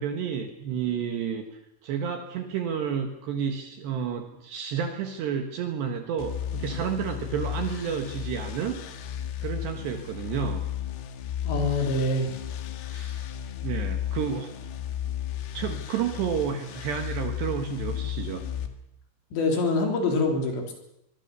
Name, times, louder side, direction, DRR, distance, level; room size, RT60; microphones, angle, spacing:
voice 1, 0.0-1.4 1.8-8.8 9.4-10.6 12.9-13.3 13.6-14.5 15.5-18.4, right 7 dB, 65° right, 5 dB, 3.4 m, -30 dB
sound 1, 6.2-18.7, left 10 dB, 85° left, 4.4 m, -34 dB
voice 2, 11.5-12.3 19.3-20.7, left 2 dB, 60° left, 3 dB, 5.7 m, -25 dB
24.0 x 22.0 x 7.0 m, 0.80 s
omnidirectional pair, 5.9 m